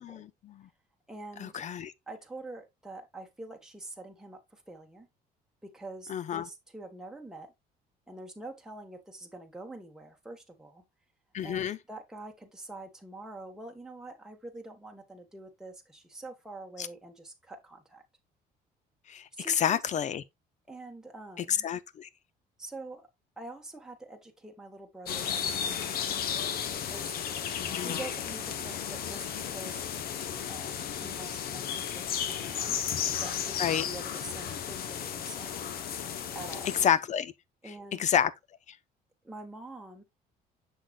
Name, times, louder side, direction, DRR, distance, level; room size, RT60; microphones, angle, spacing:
voice 1, 0.0-0.7 1.4-1.9 6.1-6.5 11.3-11.8 16.8-16.9 19.1-20.2 21.4-22.1 27.6-28.0 33.6-33.8 36.8-37.3 37.9-38.3 38.7-38.8, left 8 dB, 45° left, 0.6 m, -29 dB
voice 2, 1.1-1.6 2.1-5.1 5.6-7.5 8.1-10.8 11.4-18.0 19.3-19.8 20.7-21.7 22.6-23.1 23.4-27.1 27.8-29.9 30.5-32.0 32.3-32.8 33.2-35.5 36.3-36.7 37.6-38.1 39.2-40.0, right 2 dB, 5° right, 1.4 m, -45 dB
sound 1, 25.1-36.9, left 8 dB, 65° left, 1.0 m, -34 dB
6.5 x 6.3 x 2.4 m
cardioid pair, 110°, 17 cm